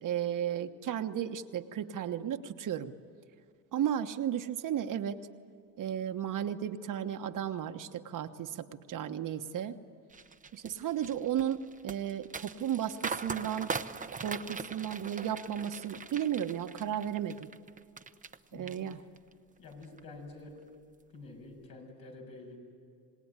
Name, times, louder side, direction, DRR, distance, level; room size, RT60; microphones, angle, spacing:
voice 1, 0.0-2.9 3.7-5.2 5.8-9.8 10.5-13.8 14.2-17.5 18.5-19.0, right 10 dB, 55° right, 8 dB, 1.3 m, -34 dB
sound 1, 10.1-18.4 18.7-19.3 19.7-20.0, right 4 dB, 20° right, 0.9 m, -41 dB
voice 2, 18.5-19.1 19.6-20.5 21.1-22.6, left 2 dB, 65° left, 1 dB, 7.1 m, -48 dB
26.5 x 19.5 x 9.8 m, 2.4 s
supercardioid pair, 90°, 38 cm